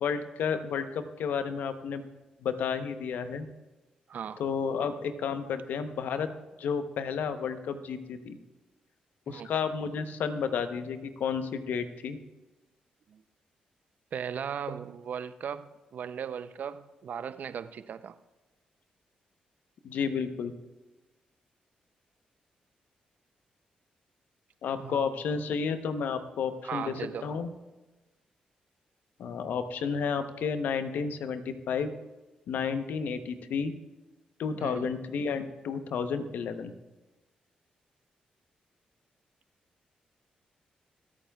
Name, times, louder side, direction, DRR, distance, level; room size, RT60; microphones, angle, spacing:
voice 1, 0.0-2.0 2.4-3.5 4.4-6.3 6.6-8.4 9.3-12.2 19.8-20.5 24.6-26.9 27.2-27.5 29.2-31.9 32.5-33.7 34.4-36.7, left 6 dB, 75° left, 9 dB, 0.8 m, -31 dB
voice 2, 4.1-4.4 9.3-9.5 13.1-13.2 14.1-18.2 24.8-25.2 26.6-27.3 34.6-34.9, right 7 dB, 65° right, 13 dB, 0.5 m, -37 dB
25.5 x 8.8 x 2.3 m, 1.1 s
supercardioid pair, 50°, 3 cm